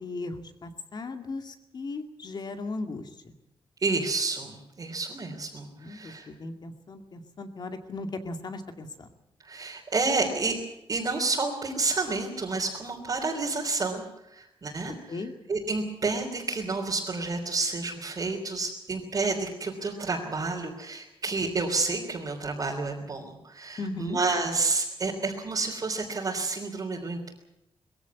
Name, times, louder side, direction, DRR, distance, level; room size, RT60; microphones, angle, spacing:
voice 1, 0.0-3.3 5.8-9.1 14.9-15.3 23.8-24.2, left 2 dB, 45° left, 6 dB, 2.3 m, -37 dB
voice 2, 3.8-6.3 9.4-10.6 10.9-27.3, right 3 dB, 40° right, -2 dB, 3.4 m, -30 dB
21.5 x 15.5 x 9.6 m, 0.88 s
wide cardioid pair, 150°, 10 cm